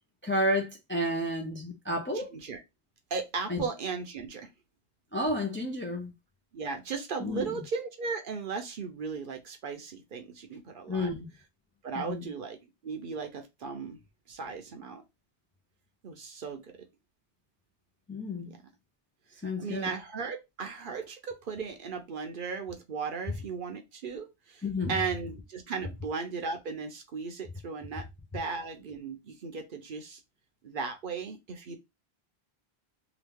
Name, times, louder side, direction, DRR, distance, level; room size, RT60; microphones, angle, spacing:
voice 1, 0.2-2.3 3.5-3.7 5.1-6.1 7.2-7.6 10.9-11.3 12.0-12.3 18.1-18.5 19.4-19.9 24.6-25.0, left 1 dB, 20° left, 0.4 m, -31 dB
voice 2, 2.1-2.6 3.1-4.5 6.5-11.1 11.8-12.6 12.8-14.0 14.3-15.0 16.0-16.8 18.5-18.6 19.6-28.1 28.3-30.2 30.6-31.8, right 5 dB, 60° right, 0.8 m, -36 dB
3.0 x 2.3 x 3.4 m
omnidirectional pair, 1.1 m